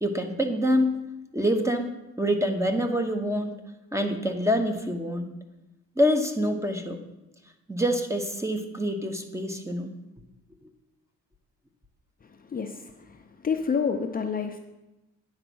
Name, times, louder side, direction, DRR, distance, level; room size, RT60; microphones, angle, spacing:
voice 1, 0.0-1.0 1.3-3.5 3.9-5.3 6.0-7.0 7.7-9.9, equal, 10° right, 5 dB, 1.0 m, -26 dB
voice 2, 12.2-14.6, left 6 dB, 30° left, 4 dB, 0.6 m, -29 dB
9.6 x 4.0 x 6.2 m, 0.98 s
cardioid pair, 90°, 30 cm